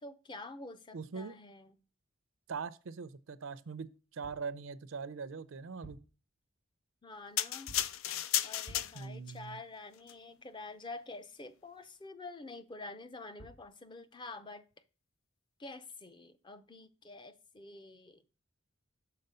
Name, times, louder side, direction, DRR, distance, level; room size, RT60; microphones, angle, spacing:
voice 1, 0.0-1.7 7.0-7.7 8.4-14.6 15.6-18.2, left 3 dB, 25° left, 0.5 m, -48 dB
voice 2, 0.9-1.3 2.5-6.0 8.9-9.6, right 5 dB, 80° right, 0.5 m, -42 dB
sound 1, 4.2-4.5 5.6-6.2 7.7-8.0 8.6-9.1 13.1-13.2 13.4-13.7, equal, 55° left, 3.0 m, -53 dB
sound 2, 7.4-9.3 10.0-10.1, left 12 dB, 90° left, 0.4 m, -34 dB
6.6 x 4.3 x 5.4 m
head